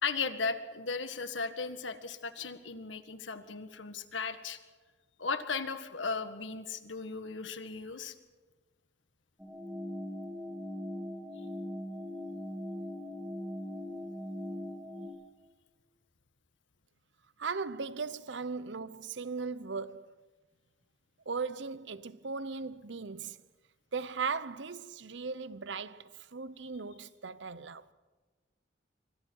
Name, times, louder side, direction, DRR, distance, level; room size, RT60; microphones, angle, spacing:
voice 1, 0.0-4.6 5.2-8.1, left 4 dB, 90° left, 1.7 m, -36 dB
sound 1, 9.4-15.1, left 1 dB, 5° right, 3.2 m, -40 dB
voice 2, 17.4-20.1 21.3-23.4 23.9-27.8, right 4 dB, 75° right, 0.8 m, -38 dB
27.5 x 24.0 x 4.7 m
head